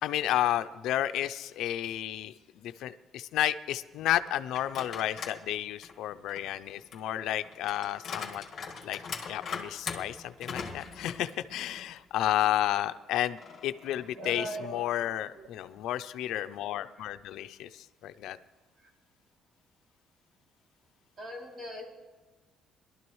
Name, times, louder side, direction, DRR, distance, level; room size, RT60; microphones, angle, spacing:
voice 1, 0.0-8.4 8.8-9.0 9.3-18.4, left 12 dB, 75° left, 11 dB, 0.4 m, -32 dB
sound 1, 4.5-5.4 5.8-11.9 12.3-12.4 13.4-14.8, left 5 dB, 35° left, 1.8 m, -41 dB
voice 2, 14.2-14.9 15.3-15.5 18.8-18.9 21.2-21.8, right 1 dB, 30° right, -1 dB, 2.7 m, -40 dB
21.5 x 12.5 x 3.1 m, 1.3 s
cardioid pair, 160°, 0 cm